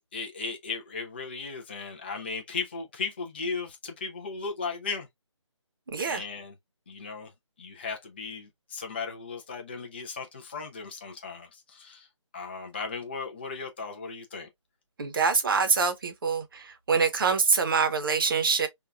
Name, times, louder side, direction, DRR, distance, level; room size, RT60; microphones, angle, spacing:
voice 1, 0.0-5.1 6.1-6.5 6.9-7.3 7.6-12.1 12.3-14.5, left 4 dB, 20° left, 0.3 m, -36 dB
voice 2, 5.9-6.2 15.0-16.4 16.9-18.7, right 5 dB, 45° right, 0.7 m, -24 dB
3.6 x 2.2 x 2.3 m
figure-of-eight pair, 155°, 16 cm